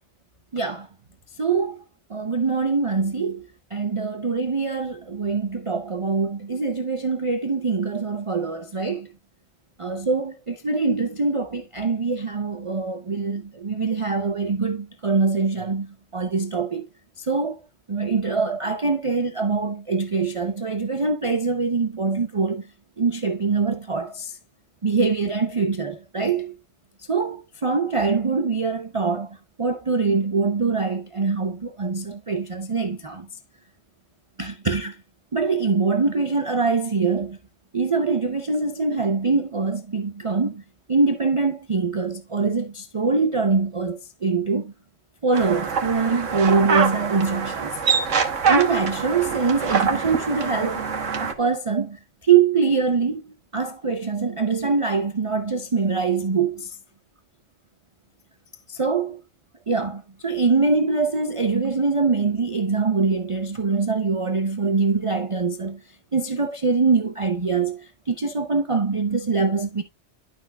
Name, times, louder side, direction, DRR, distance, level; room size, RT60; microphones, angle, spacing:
voice 1, 0.5-0.9 1.4-1.8 2.1-9.1 9.8-16.9 17.2-17.6 17.9-22.6 23.0-24.3 24.8-26.5 27.1-27.4 27.6-33.3 34.4-35.0 35.3-37.4 37.7-40.6 40.9-44.7 45.2-47.8 48.5-50.8 51.2-53.3 53.5-56.8 58.7-59.1 59.7-65.8 66.1-69.8, right 4 dB, 35° right, 0.6 m, -23 dB
sound 1, 45.3-51.3, right 6 dB, 85° right, 1.5 m, -24 dB
11.5 x 5.7 x 2.3 m
omnidirectional pair, 1.3 m